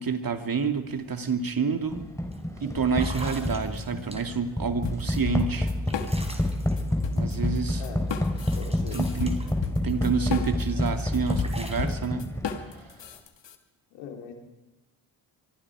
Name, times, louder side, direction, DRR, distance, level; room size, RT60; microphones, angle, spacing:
voice 1, 0.0-2.1 2.6-5.7 7.1-7.8 8.9-9.4 9.8-12.3, right 5 dB, 45° right, 7 dB, 2.6 m, -28 dB
sound 1, 0.9-1.0 1.4-1.7 2.3-2.4 2.9-4.5 5.1-7.8 8.1-10.2 10.6-12.0, right 1 dB, 10° right, 4.3 m, -45 dB
sound 2, 1.9-12.8, left 1 dB, 5° left, 4.1 m, -29 dB
sound 3, 4.8-6.5 6.8-13.6, left 7 dB, 60° left, 2.4 m, -34 dB
voice 2, 8.5-9.0 13.9-14.3, left 6 dB, 85° left, 3 dB, 3.6 m, -40 dB
24.0 x 24.0 x 4.9 m, 1.0 s
hypercardioid pair, 45°, 50 cm